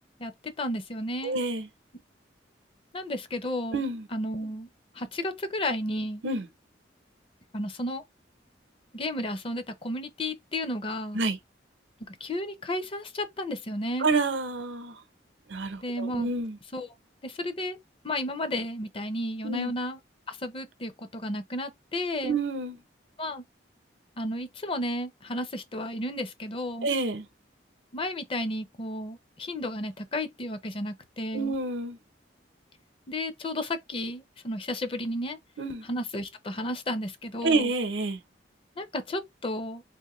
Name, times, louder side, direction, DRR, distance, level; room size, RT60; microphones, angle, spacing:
voice 1, 0.6-1.4 2.9-3.8 4.1-4.7 5.0-6.2 7.5-8.0 8.9-11.2 12.1-14.1 15.8-16.3 16.7-16.9 17.2-17.8 18.0-20.0 20.3-22.4 23.2-23.4 24.2-26.9 27.9-31.5 33.1-35.4 35.9-37.7 38.8-39.8, left 1 dB, 30° left, 0.5 m, -33 dB
voice 2, 1.2-1.7 3.7-4.1 6.2-6.5 11.1-11.4 14.0-15.0 15.5-16.6 19.4-19.7 22.2-22.8 26.8-27.3 31.3-32.0 35.6-35.9 37.4-38.2, right 3 dB, 85° right, 0.7 m, -28 dB
3.5 x 2.6 x 2.9 m
head